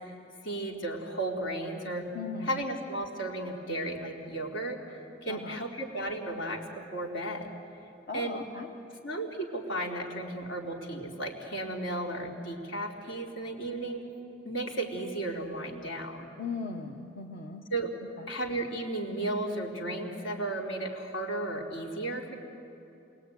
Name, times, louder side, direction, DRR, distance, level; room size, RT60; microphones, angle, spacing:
voice 1, 0.4-2.1 2.4-4.8 5.2-7.5 8.1-8.4 9.0-14.1 14.4-16.3 17.7-18.0 18.3-22.3, right 1 dB, 80° left, 0 dB, 3.7 m, -34 dB
voice 2, 2.1-2.6 5.3-5.6 8.1-8.7 16.4-17.7 18.2-18.3, left 4 dB, 55° left, 1 dB, 1.3 m, -38 dB
28.0 x 22.0 x 9.4 m, 2.9 s
head